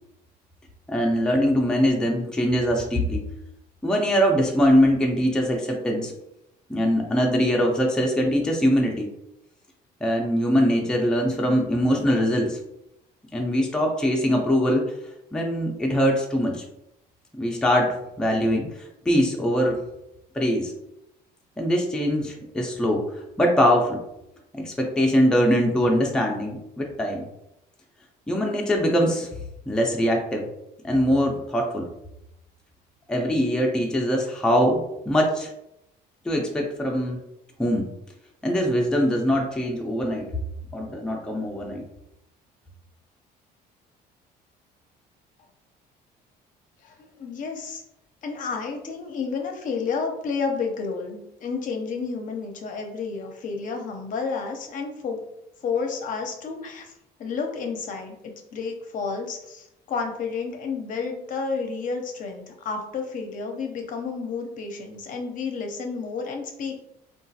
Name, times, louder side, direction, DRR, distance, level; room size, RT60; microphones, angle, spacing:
voice 1, 0.9-3.3 3.8-6.1 6.7-9.1 10.0-12.6 13.3-14.9 15.3-16.6 17.4-18.7 19.1-19.8 20.3-20.7 21.6-24.0 24.5-27.3 28.3-29.3 29.7-30.5 30.8-31.9 33.1-35.5 36.2-37.2 37.6-37.9 38.4-40.3 40.7-41.8, equal, 5° left, 0 dB, 0.4 m, -22 dB
voice 2, 46.8-47.8 48.2-55.2 55.6-56.9 57.2-66.8, left 5 dB, 50° left, 3 dB, 0.6 m, -31 dB
3.0 x 2.3 x 2.7 m, 0.84 s
cardioid pair, 110°, 17 cm